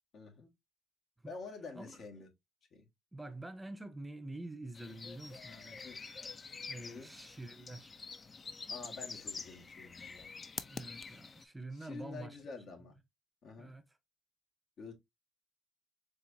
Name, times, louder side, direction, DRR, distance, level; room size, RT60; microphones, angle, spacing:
voice 1, 0.1-0.5 1.3-2.3 2.7-2.8 5.8-6.0 6.8-7.1 8.7-10.3 11.7-13.0 13.4-13.7 14.8-14.9, left 4 dB, 65° left, 1.5 m, -48 dB
voice 2, 3.1-5.8 6.7-7.9 10.7-12.4 13.6-13.8, right 2 dB, 15° right, 0.6 m, -47 dB
sound 1, 4.7-11.4, left 4 dB, 35° left, 0.5 m, -46 dB
4.5 x 3.1 x 2.6 m
cardioid pair, 90°, 0 cm